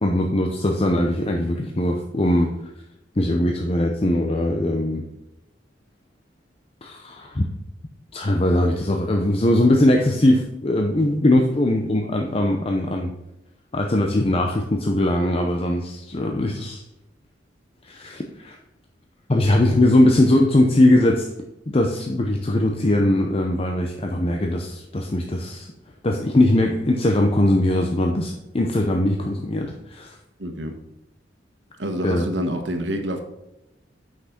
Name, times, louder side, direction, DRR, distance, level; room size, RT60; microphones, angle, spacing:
voice 1, 0.0-2.5 3.2-5.1 6.8-7.5 8.1-13.1 13.7-16.8 17.8-18.6 19.3-21.3 21.7-25.7 26.0-30.2 32.0-32.2, left 1 dB, 30° left, 2 dB, 0.7 m, -20 dB
voice 2, 30.4-30.8 31.8-33.2, equal, 90° right, 5 dB, 1.3 m, -27 dB
8.2 x 6.0 x 4.3 m, 0.93 s
head